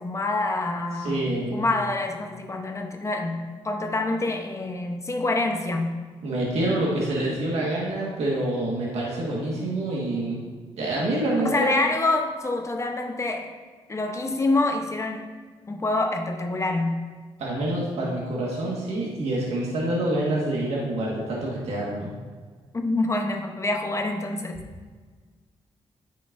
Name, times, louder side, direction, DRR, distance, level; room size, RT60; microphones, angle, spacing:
voice 1, 0.0-1.2 1.5-5.9 11.4-13.5 13.9-15.3 15.7-17.0 22.7-24.6, left 2 dB, 25° left, 4 dB, 0.8 m, -26 dB
voice 2, 0.9-1.7 6.2-10.4 10.7-11.7 17.4-22.1, right 1 dB, 85° right, -4 dB, 1.6 m, -27 dB
9.3 x 5.6 x 2.6 m, 1.5 s
cardioid pair, 85°, 11 cm